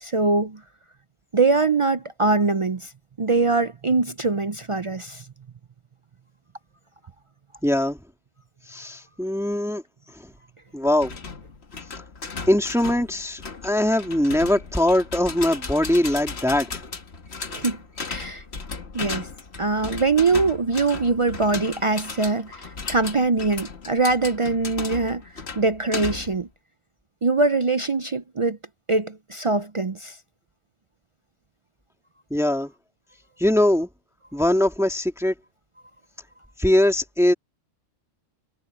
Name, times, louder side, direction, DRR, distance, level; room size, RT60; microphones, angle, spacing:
voice 1, 0.0-0.6 1.3-2.9 3.2-5.2 17.5-17.8 18.1-18.4 18.9-19.3 19.6-25.2 25.6-26.5 27.2-28.6 28.9-30.2, right 3 dB, 50° right, 0.3 m, -22 dB
voice 2, 7.6-8.0 8.7-9.8 10.1-10.3 10.7-11.1 12.5-16.8 32.3-32.7 33.4-33.9 34.3-35.3 36.6-37.3, left 1 dB, ahead, 2.3 m, -21 dB
sound 1, 11.0-26.4, left 4 dB, 55° left, 1.9 m, -36 dB
omnidirectional pair, 1.3 m